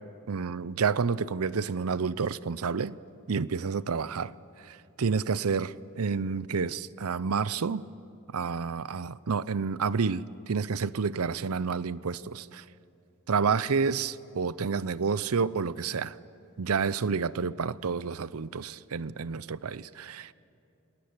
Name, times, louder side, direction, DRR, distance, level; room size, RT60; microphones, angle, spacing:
voice 1, 0.3-2.9 3.3-4.3 4.6-7.8 8.3-12.6 13.3-16.2 16.6-20.3, right 5 dB, 80° right, 0.6 m, -29 dB
27.5 x 20.0 x 9.8 m
head